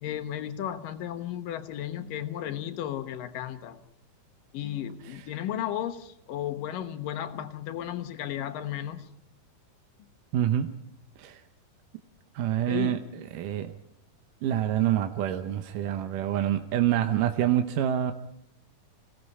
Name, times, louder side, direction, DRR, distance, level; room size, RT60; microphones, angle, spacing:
voice 1, 0.0-3.8 4.5-9.1 12.7-13.0, left 11 dB, 70° left, 9 dB, 2.7 m, -34 dB
voice 2, 10.3-10.7 11.2-11.4 12.4-13.0 13.3-13.7 14.4-18.1, right 11 dB, 70° right, 7 dB, 2.3 m, -26 dB
27.5 x 17.0 x 5.5 m, 0.72 s
omnidirectional pair, 4.4 m